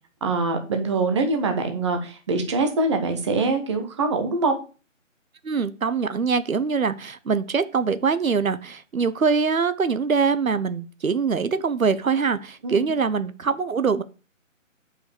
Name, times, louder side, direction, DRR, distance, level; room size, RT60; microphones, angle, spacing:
voice 1, 0.2-4.5 12.6-12.8, right 3 dB, 20° right, 5 dB, 1.1 m, -24 dB
voice 2, 5.4-14.0, right 5 dB, 90° right, 13 dB, 1.0 m, -23 dB
6.6 x 5.7 x 7.0 m, 0.35 s
figure-of-eight pair, 160°, 40 cm